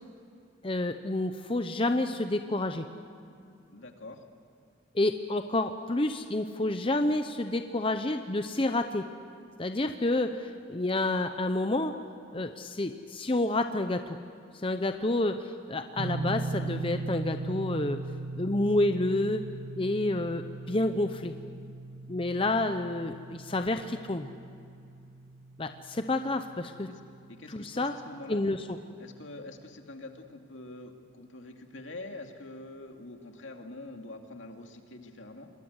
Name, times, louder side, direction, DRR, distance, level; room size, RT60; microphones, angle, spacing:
voice 1, 0.6-2.9 4.9-9.0 9.6-11.9 12.3-14.2 14.6-18.0 18.4-19.4 19.8-21.4 22.1-24.3 25.6-26.9 27.5-27.9 28.3-28.6, left 2 dB, 25° left, 7 dB, 0.7 m, -29 dB
voice 2, 3.7-4.2 26.9-27.0 27.3-35.5, left 2 dB, 75° left, 4 dB, 2.3 m, -45 dB
sound 1, 16.0-28.9, right 2 dB, 75° right, 1.1 m, -39 dB
27.0 x 21.5 x 8.0 m, 2.5 s
head